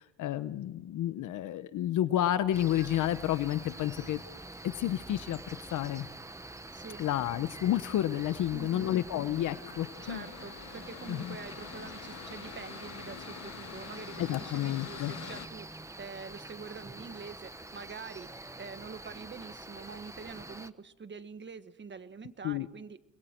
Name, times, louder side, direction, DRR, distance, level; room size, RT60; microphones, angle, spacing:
voice 1, 0.0-4.2 4.6-5.4 5.7-6.1 7.0-10.2 11.1-11.4 14.2-15.1 22.4-22.7, left 12 dB, 80° left, 13 dB, 1.0 m, -30 dB
Cricket, 2.5-20.7, right 2 dB, 10° right, 1.0 m, -46 dB
voice 2, 6.7-7.1 8.5-9.0 10.0-23.0, right 5 dB, 40° right, 11 dB, 1.6 m, -45 dB
Mechanical fan, 8.4-15.5, left 9 dB, 60° left, 1.2 m, -47 dB
29.0 x 22.0 x 4.6 m, 0.87 s
cardioid pair, 90°, 30 cm